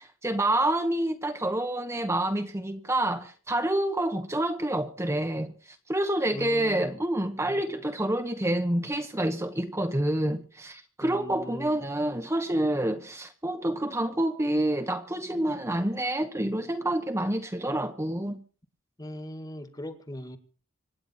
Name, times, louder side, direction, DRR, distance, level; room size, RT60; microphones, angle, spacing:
voice 1, 0.0-18.4, right 1 dB, 15° right, 1.0 m, -28 dB
voice 2, 6.3-7.0 11.0-11.8 19.0-20.4, left 1 dB, 20° left, 1.7 m, -39 dB
26.0 x 9.8 x 4.3 m
head